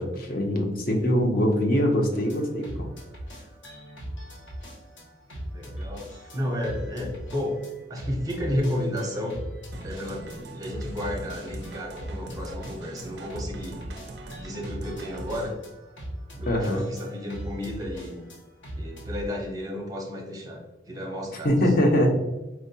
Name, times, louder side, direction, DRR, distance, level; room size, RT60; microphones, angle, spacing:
voice 1, 0.0-2.9 16.5-16.8 21.4-22.1, equal, 50° left, 2 dB, 0.6 m, -23 dB
sound 1, 2.1-19.3, equal, 85° left, 0.9 m, -39 dB
voice 2, 5.5-7.6 7.9-9.4 9.8-13.8 14.4-15.6 16.3-18.3 18.7-21.5, left 1 dB, 20° right, -1 dB, 0.6 m, -32 dB
sound 2, 9.7-15.6, right 2 dB, 60° right, 0.4 m, -42 dB
4.4 x 2.1 x 2.6 m, 1.1 s
head